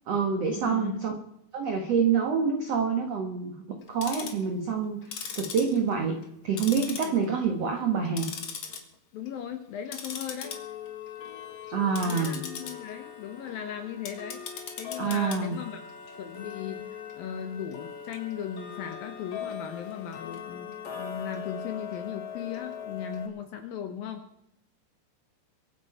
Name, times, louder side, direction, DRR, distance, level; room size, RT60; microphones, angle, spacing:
voice 1, 0.1-1.1 1.5-6.2 6.4-8.3 11.7-12.4 15.0-15.6, right 6 dB, 80° right, 4 dB, 1.4 m, -27 dB
voice 2, 0.6-1.1 7.1-7.4 9.1-10.6 12.0-14.5 14.8-15.8 16.2-24.2, left 8 dB, 70° left, 7 dB, 2.3 m, -37 dB
Tick-tock, 3.8-4.4 5.0-6.3 6.6-7.5 7.8-8.8 9.2-9.4 9.9-23.3, left 7 dB, 55° left, 2.1 m, -39 dB
24.0 x 8.8 x 4.9 m, 0.79 s
omnidirectional pair, 5.2 m